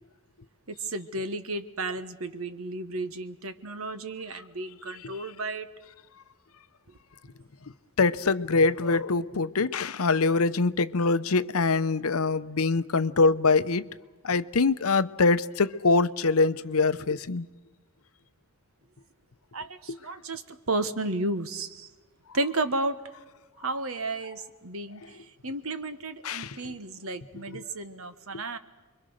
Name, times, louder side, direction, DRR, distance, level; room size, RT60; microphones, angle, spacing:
voice 1, 0.7-5.7 19.5-21.9 22.3-23.0 23.6-28.6, right 2 dB, 70° right, 1.5 m, -33 dB
voice 2, 8.0-13.9 14.2-17.5 19.9-20.0 26.2-26.6 27.5-27.6, left 3 dB, 75° left, 0.8 m, -24 dB
29.5 x 23.0 x 6.5 m
head